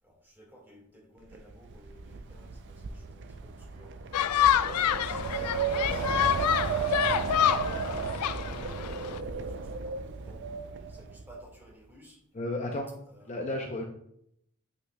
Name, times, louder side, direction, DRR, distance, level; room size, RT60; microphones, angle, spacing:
voice 1, 0.0-6.8 7.2-12.2 13.1-13.5, right 1 dB, 10° right, -1 dB, 1.5 m, -54 dB
Wind, 1.3-11.4, right 5 dB, 50° right, 0.4 m, -34 dB
sound 1, 4.1-9.2, left 10 dB, 85° left, 0.3 m, -27 dB
voice 2, 12.3-12.9 13.3-13.8, left 1 dB, 30° left, 2 dB, 0.6 m, -32 dB
7.9 x 5.8 x 2.2 m, 0.72 s
head